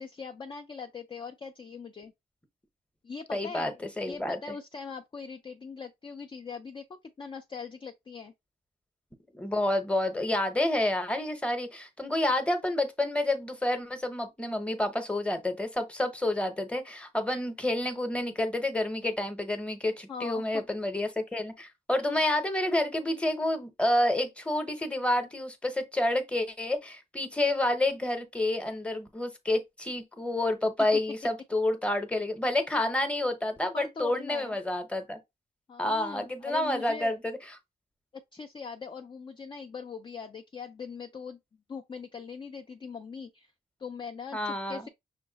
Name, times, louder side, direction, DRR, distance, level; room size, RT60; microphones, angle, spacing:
voice 1, 0.0-2.1 3.0-8.3 20.1-20.6 33.7-34.6 35.7-37.2 38.3-41.4 41.7-43.5 43.8-44.9, left 5 dB, 30° left, 0.4 m, -41 dB
voice 2, 3.3-3.7 4.0-4.5 9.3-35.2 35.8-37.4 44.3-44.8, left 1 dB, 5° left, 0.8 m, -29 dB
5.7 x 2.2 x 3.9 m
wide cardioid pair, 145°, 17 cm